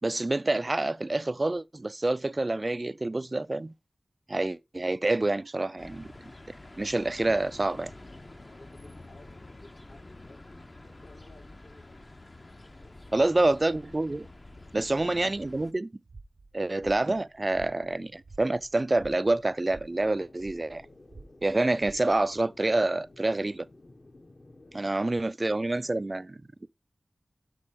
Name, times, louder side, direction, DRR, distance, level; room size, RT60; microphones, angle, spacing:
voice 1, 0.0-3.7 4.3-6.1 6.8-7.9 13.1-14.3 14.7-15.9 16.5-20.8 21.4-23.7 24.7-26.3 26.6-26.7, right 2 dB, 35° right, 0.4 m, -27 dB
sound 1, 5.8-15.7, left 2 dB, 35° left, 0.7 m, -48 dB
voice 2, 8.4-12.1 12.8-13.3 14.6-15.5 24.6-26.1, left 2 dB, 75° left, 3.7 m, -57 dB
sound 2, 16.0-22.4, right 3 dB, 75° right, 0.9 m, -52 dB
Strong Wind, 19.9-24.9, left 2 dB, 55° left, 1.4 m, -54 dB
12.0 x 5.3 x 3.6 m
wide cardioid pair, 80°, 0 cm